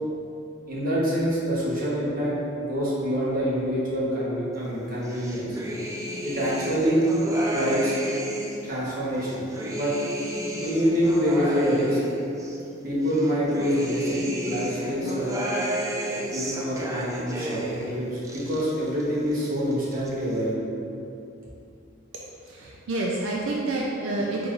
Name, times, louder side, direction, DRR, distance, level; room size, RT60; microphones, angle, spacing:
voice 1, 0.7-5.6 6.2-7.1 7.5-8.0 8.6-9.9 10.5-12.0 12.8-15.3 16.3-20.7, equal, 45° right, -7 dB, 1.1 m, -26 dB
sound 1, 5.0-8.7 9.1-12.6 13.0-17.9 18.2-19.0 19.3-20.1, right 1 dB, 15° right, 0.3 m, -32 dB
voice 2, 22.1-24.5, right 2 dB, 85° right, -3 dB, 0.4 m, -29 dB
4.5 x 3.9 x 2.4 m, 2.7 s
head